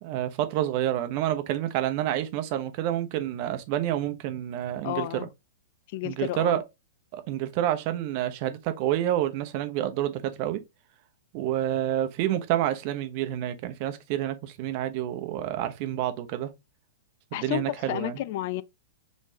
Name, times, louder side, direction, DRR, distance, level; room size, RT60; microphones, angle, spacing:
voice 1, 0.0-5.1 6.0-6.6 7.1-10.6 11.3-16.5 17.3-18.2, right 12 dB, 45° right, 0.8 m, -28 dB
voice 2, 4.8-5.3 5.9-6.6 17.3-18.6, left 15 dB, 50° left, 0.4 m, -31 dB
5.4 x 3.1 x 2.8 m
figure-of-eight pair, 105°, 0 cm